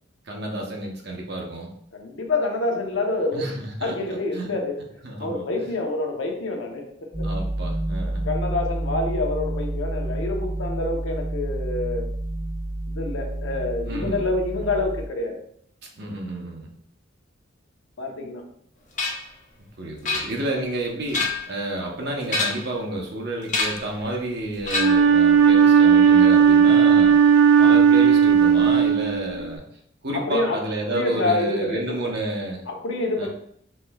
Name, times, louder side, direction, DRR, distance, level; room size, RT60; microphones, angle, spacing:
voice 1, 0.3-1.7 3.3-4.5 5.0-5.6 7.2-8.2 13.8-14.3 16.0-16.7 19.8-27.2 27.6-29.6 30.0-32.6 33.2-33.3, right 1 dB, 55° right, 0 dB, 0.8 m, -30 dB
voice 2, 1.9-3.5 3.8-4.7 5.2-7.3 8.2-12.1 12.9-15.4 18.0-18.4 30.1-30.6 30.9-32.1 32.7-33.3, left 2 dB, 80° left, 1 dB, 0.8 m, -27 dB
sound 1, 7.1-15.1, right 1 dB, 5° right, 0.3 m, -29 dB
sound 2, 19.0-19.3 20.0-20.6 21.0-21.6 22.2-22.8 23.5-23.9 24.6-25.1, left 3 dB, 40° left, 0.7 m, -27 dB
Wind instrument woodwind instrument, 24.8-29.5, right 7 dB, 80° right, 0.4 m, -15 dB
4.3 x 3.1 x 2.3 m, 0.67 s
head